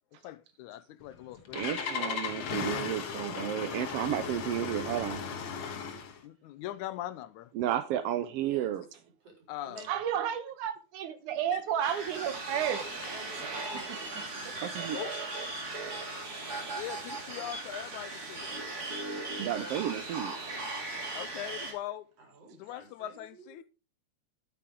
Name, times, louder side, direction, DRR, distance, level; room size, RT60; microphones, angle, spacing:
voice 1, 0.2-2.2 6.2-7.5 9.5-9.9 14.9-15.1 16.7-18.6 21.1-22.1 22.6-23.6, left 13 dB, 90° left, 2.1 m, -41 dB
Engine starting, 1.0-6.2, left 6 dB, 55° left, 1.7 m, -36 dB
voice 2, 1.5-5.2 7.5-8.8 14.6-15.0 19.4-20.3, right 11 dB, 75° right, 1.5 m, -32 dB
voice 3, 8.4-8.9 9.2-9.3 9.6-9.9 12.9-15.1 19.5-19.7 22.2-23.6, right 3 dB, 55° right, 5.2 m, -52 dB
voice 4, 9.9-12.9 14.5-14.6, right 9 dB, 90° right, 2.6 m, -32 dB
sound 1, 11.8-21.7, right 2 dB, 35° right, 2.6 m, -38 dB
11.0 x 8.6 x 3.7 m
omnidirectional pair, 3.4 m